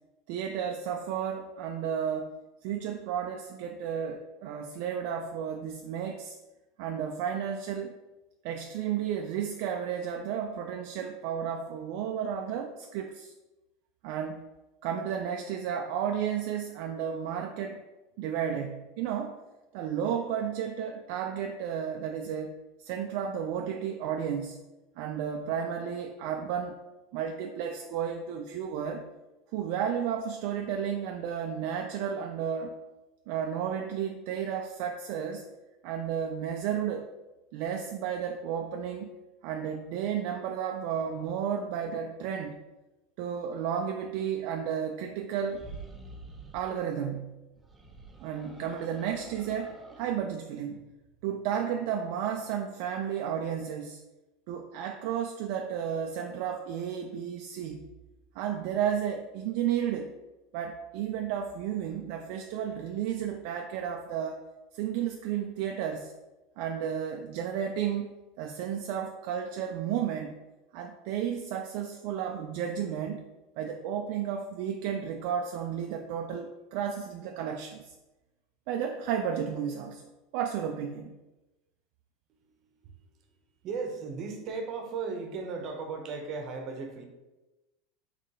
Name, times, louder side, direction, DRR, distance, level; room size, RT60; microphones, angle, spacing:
voice 1, 0.3-2.3 2.6-6.4 6.8-8.0 8.4-13.3 14.0-14.4 14.8-17.8 18.2-19.4 19.7-24.6 25.0-26.8 27.1-29.0 29.5-32.7 33.3-35.4 35.8-37.1 37.5-39.1 39.4-42.6 43.2-45.7 46.5-47.4 48.2-50.8 51.2-54.0 54.5-57.9 58.4-60.1 60.5-64.4 64.7-66.1 66.6-68.1 68.4-70.4 70.7-73.2 73.6-77.9 78.7-81.1, right 8 dB, 65° right, 4 dB, 0.3 m, -33 dB
sound 1, 45.4-46.7 47.6-50.2, right 3 dB, 15° right, 0.7 m, -47 dB
voice 2, 82.3-83.3 83.6-87.0, right 4 dB, 50° right, 4 dB, 0.8 m, -37 dB
3.9 x 3.2 x 3.7 m, 1.1 s
hypercardioid pair, 100°, 0 cm